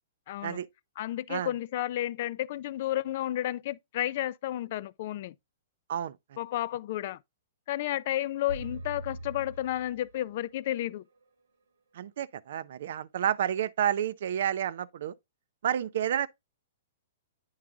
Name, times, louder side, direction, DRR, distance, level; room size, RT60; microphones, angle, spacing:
voice 1, 0.3-0.6 1.0-5.3 6.4-7.2 7.7-11.0, left 13 dB, 55° left, 0.3 m, -32 dB
sound 1, 8.5-10.6, right 1 dB, 90° right, 1.2 m, -43 dB
voice 2, 12.0-15.1 15.6-16.3, right 10 dB, 70° right, 0.5 m, -30 dB
8.9 x 4.7 x 2.3 m
hypercardioid pair, 140°, 0 cm